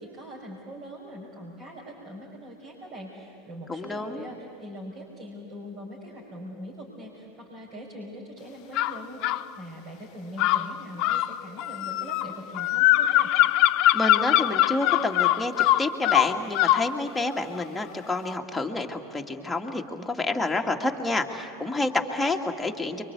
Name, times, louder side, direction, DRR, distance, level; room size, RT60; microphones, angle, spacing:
voice 1, 0.0-13.3, equal, 35° right, -3 dB, 5.5 m, -42 dB
voice 2, 3.7-4.3 13.9-15.5 15.8-23.0, left 2 dB, 5° left, 2 dB, 2.3 m, -29 dB
sound 1, 8.8-9.4 10.4-16.9, left 15 dB, 45° left, 0.6 m, -22 dB
30.0 x 24.0 x 8.4 m, 2.5 s
figure-of-eight pair, 80°, 0 cm